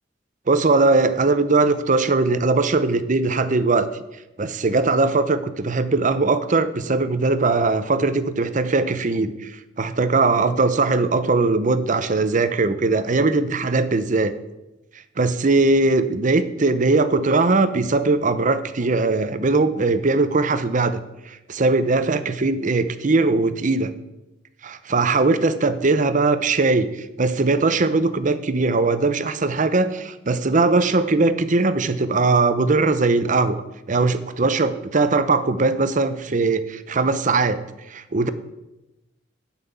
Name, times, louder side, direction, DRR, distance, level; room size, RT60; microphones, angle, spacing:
voice 1, 0.5-3.9 4.4-14.3 15.2-21.0 21.3-23.9 24.6-33.6 33.9-37.6 37.9-38.3, right 3 dB, 45° right, 12 dB, 0.7 m, -20 dB
9.6 x 5.8 x 8.2 m, 0.98 s
head